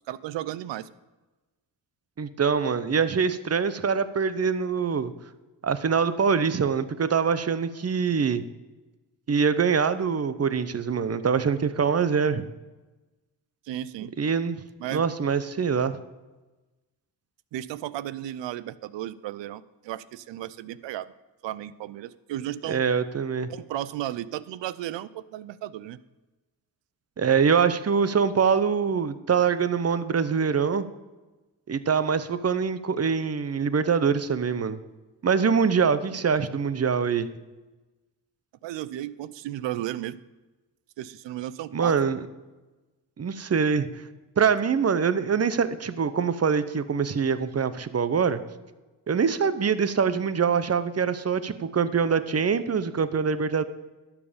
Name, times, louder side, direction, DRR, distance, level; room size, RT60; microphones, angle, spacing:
voice 1, 0.1-0.9 13.7-14.1 14.8-15.0 17.5-21.1 21.4-22.8 23.5-26.0 38.6-40.2 41.0-42.0, right 13 dB, 75° right, 18 dB, 0.6 m, -34 dB
voice 2, 2.2-5.1 5.6-8.4 9.3-12.4 14.2-14.6 14.9-16.0 22.7-23.5 27.2-30.9 31.7-34.8 35.2-37.3 41.7-42.2 43.2-43.9 44.4-48.4 49.1-53.7, right 6 dB, 35° right, 13 dB, 0.8 m, -24 dB
12.0 x 7.3 x 5.1 m, 1.1 s
supercardioid pair, 55°, 44 cm